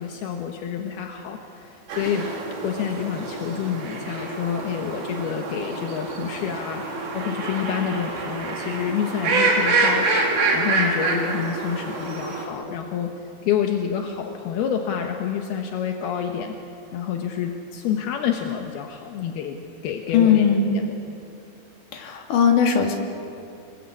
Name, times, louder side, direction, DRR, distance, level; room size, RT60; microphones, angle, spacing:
voice 1, 0.0-2.3 2.6-13.1 13.4-16.5 16.9-19.6 19.8-20.5 20.7-21.0, left 8 dB, 70° left, 3 dB, 2.5 m, -28 dB
sound 1, 1.9-12.4, right 3 dB, 60° right, 5.4 m, -26 dB
voice 2, 20.1-20.7 21.9-22.9, left 6 dB, 50° left, 2 dB, 3.1 m, -19 dB
28.0 x 22.0 x 8.4 m, 2.7 s
omnidirectional pair, 6.0 m